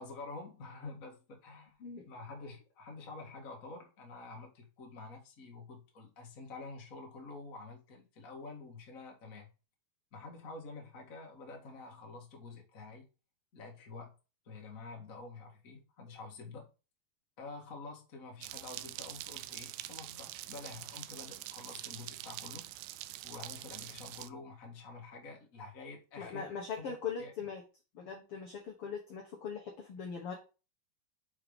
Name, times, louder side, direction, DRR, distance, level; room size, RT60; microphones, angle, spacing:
voice 1, 0.0-1.8 2.0-9.5 10.1-13.1 13.5-14.1 14.4-16.7 17.4-22.7 23.2-26.4 26.9-27.3, left 3 dB, 40° left, 1.2 m, -48 dB
sound 1, 18.4-24.3, right 16 dB, 85° right, 2.3 m, -45 dB
voice 2, 26.2-27.6 27.9-30.3, left 6 dB, 70° left, 1.3 m, -40 dB
6.5 x 4.6 x 5.1 m
omnidirectional pair, 4.3 m